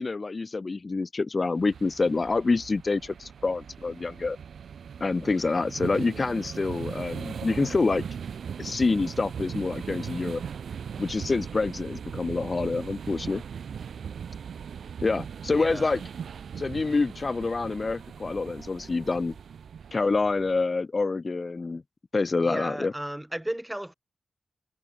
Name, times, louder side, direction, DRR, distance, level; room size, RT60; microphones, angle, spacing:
voice 1, 0.0-4.4 5.0-8.0 8.6-10.4 11.0-13.4 15.0-16.0 16.6-19.4 19.9-21.8 22.1-22.9, left 3 dB, 30° left, 0.4 m, -27 dB
sound 1, 1.6-20.6, right 7 dB, 85° right, 1.4 m, -39 dB
voice 2, 15.5-16.0 22.4-23.9, right 1 dB, 5° right, 1.0 m, -34 dB
wide cardioid pair, 180°, 0 cm